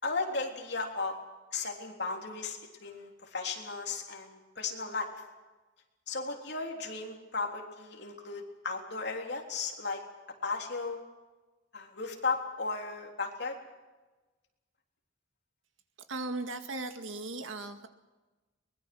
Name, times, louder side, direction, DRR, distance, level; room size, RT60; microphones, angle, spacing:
voice 1, 0.0-1.2 1.5-5.1 6.1-10.0 10.4-11.0 11.7-13.6, left 4 dB, 55° left, 1 dB, 3.6 m, -35 dB
voice 2, 16.1-17.9, right 2 dB, 80° right, 7 dB, 2.0 m, -37 dB
23.0 x 21.5 x 6.2 m, 1.2 s
head